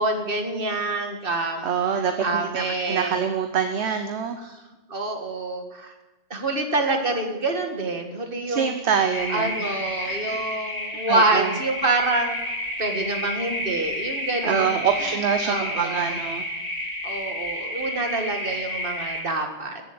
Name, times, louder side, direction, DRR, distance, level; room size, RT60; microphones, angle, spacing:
voice 1, 0.0-1.7 1.9-3.2 4.4-4.6 4.9-5.9 6.3-8.7 9.3-12.4 12.8-15.2 15.4-16.1 17.0-19.8, right 2 dB, 50° right, 4 dB, 2.0 m, -27 dB
voice 2, 1.6-4.4 8.5-9.7 10.0-10.4 10.9-11.6 14.4-16.4, right 7 dB, 65° right, 7 dB, 1.2 m, -25 dB
sound 1, 9.1-19.2, left 1 dB, 35° left, 3.4 m, -31 dB
15.0 x 7.6 x 8.7 m, 1.1 s
omnidirectional pair, 1.2 m